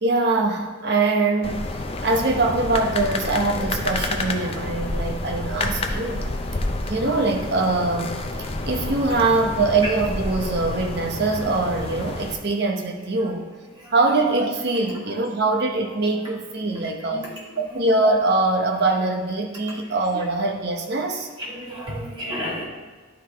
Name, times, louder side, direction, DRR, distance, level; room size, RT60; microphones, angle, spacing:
voice 1, 0.0-1.6 2.0-6.3 6.9-8.2 8.7-13.5 13.9-17.3 17.6-21.3, right 3 dB, 50° right, 3 dB, 0.9 m, -23 dB
sound 1, 1.4-12.3, left 2 dB, 30° left, 0.5 m, -29 dB
voice 2, 21.4-22.7, equal, 25° right, -5 dB, 1.8 m, -31 dB
11.5 x 4.7 x 3.4 m, 1.4 s
head